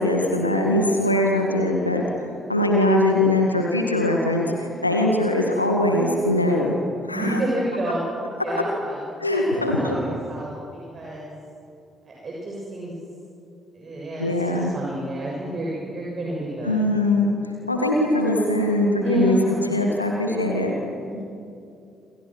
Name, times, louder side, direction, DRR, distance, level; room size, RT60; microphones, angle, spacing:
voice 1, 0.0-2.0 2.5-6.8 7.1-7.4 9.2-10.0 14.2-14.7 16.6-17.3 17.7-20.7, left 1 dB, 85° left, 1 dB, 2.0 m, -21 dB
voice 2, 7.1-8.0 8.4-9.0 9.3-11.3 12.1-12.9 13.7-16.9 18.9-19.8 21.1-21.2, right 1 dB, 40° right, -4 dB, 7.1 m, -29 dB
28.5 x 26.0 x 6.3 m, 2.6 s
figure-of-eight pair, 45°, 0 cm